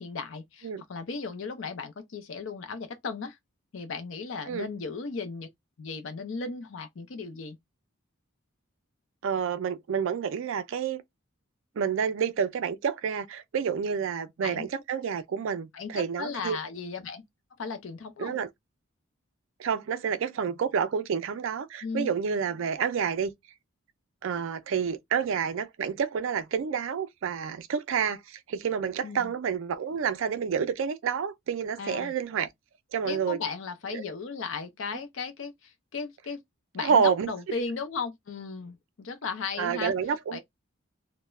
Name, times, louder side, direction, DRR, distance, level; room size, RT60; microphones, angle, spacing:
voice 1, 0.0-3.4 3.7-5.5 5.8-7.6 14.4-14.7 15.7-17.2 17.6-18.4 21.8-22.1 29.0-29.3 31.8-32.1 33.0-36.4 36.7-39.9 40.3-40.4, left 4 dB, 65° left, 0.5 m, -36 dB
voice 2, 9.2-11.0 11.8-16.6 18.2-18.5 19.6-23.3 24.2-32.5 32.9-33.4 33.9-34.0 34.9-35.0 36.8-37.3 39.6-40.4, right 7 dB, 65° right, 0.3 m, -29 dB
2.2 x 2.1 x 3.0 m
head